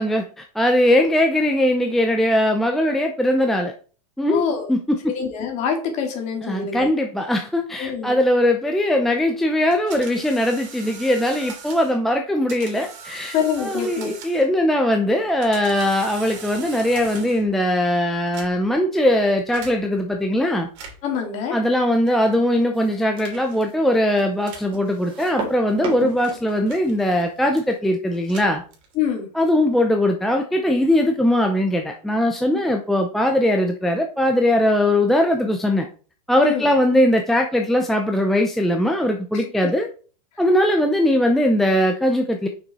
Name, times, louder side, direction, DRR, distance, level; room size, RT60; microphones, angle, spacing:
voice 1, 0.0-3.7 4.2-4.4 4.7-5.1 6.4-20.7 21.5-28.6 29.4-35.9 36.3-39.9 40.4-42.5, left 1 dB, ahead, 3 dB, 0.5 m, -20 dB
voice 2, 4.2-4.7 5.1-6.9 7.8-8.1 13.3-14.1 21.0-21.6 29.0-29.3 32.5-32.6 36.4-36.7 39.3-39.7, left 7 dB, 35° left, 2 dB, 2.3 m, -25 dB
sound 1, 9.7-12.0 12.5-14.6 15.2-17.5 18.2-18.8 19.5-19.8 20.6-21.2 22.1-22.4 23.2-23.6 24.4-24.8 25.5-27.3 28.1-29.1, right 5 dB, 50° right, 2.9 m, -41 dB
sound 2, 22.5-27.8, right 3 dB, 25° right, 2.2 m, -35 dB
6.1 x 6.0 x 4.1 m, 0.39 s
supercardioid pair, 155°, 21 cm